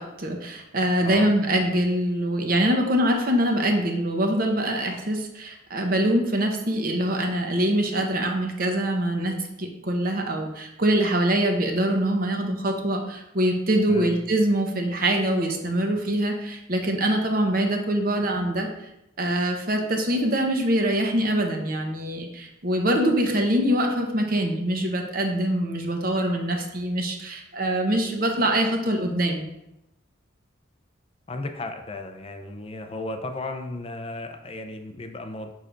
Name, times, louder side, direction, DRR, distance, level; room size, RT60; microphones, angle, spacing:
voice 1, 0.0-18.7 19.2-29.5, right 1 dB, 45° right, 3 dB, 0.8 m, -24 dB
voice 2, 31.3-35.5, left 2 dB, 30° left, 6 dB, 0.5 m, -34 dB
6.6 x 6.5 x 2.5 m, 0.88 s
head